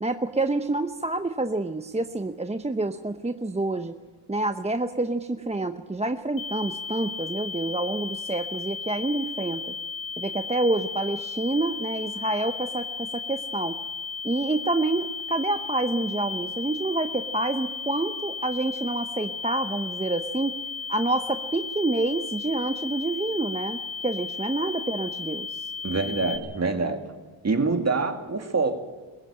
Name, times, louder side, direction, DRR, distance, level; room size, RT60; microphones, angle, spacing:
voice 1, 0.0-4.0 4.3-9.7 10.2-13.8 14.2-20.6 20.9-25.7, right 2 dB, 15° right, 8 dB, 0.8 m, -28 dB
sound 1, 6.4-26.4, left 5 dB, 70° left, 4.3 m, -35 dB
voice 2, 25.8-27.0 27.4-28.9, right 3 dB, 30° right, 6 dB, 2.4 m, -25 dB
21.5 x 16.0 x 8.8 m, 1.4 s
cardioid pair, 90°, 48 cm